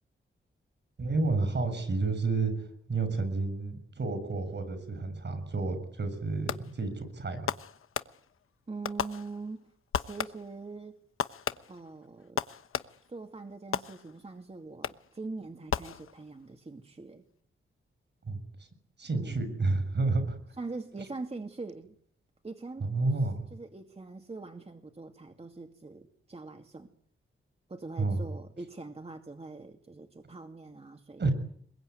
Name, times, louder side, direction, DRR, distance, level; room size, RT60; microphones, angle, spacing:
voice 1, 1.0-7.5 18.3-18.4 19.0-20.4 22.8-23.4 28.0-28.2 31.2-31.3, right 3 dB, 55° right, 11 dB, 7.4 m, -30 dB
Fireworks, 6.5-6.9 7.5-8.5 8.8-9.6 9.9-10.6 11.2-13.2 13.7-14.4 14.8-15.2 15.7-16.5, left 8 dB, 85° left, 1.1 m, -36 dB
voice 2, 8.7-11.0 11.7-12.4 13.1-17.2 19.1-19.4 20.6-21.9 22.4-23.1 23.5-26.9 27.7-31.2, right 3 dB, 30° right, 5 dB, 2.4 m, -43 dB
25.5 x 22.0 x 9.6 m, 0.64 s
wide cardioid pair, 95°, 21 cm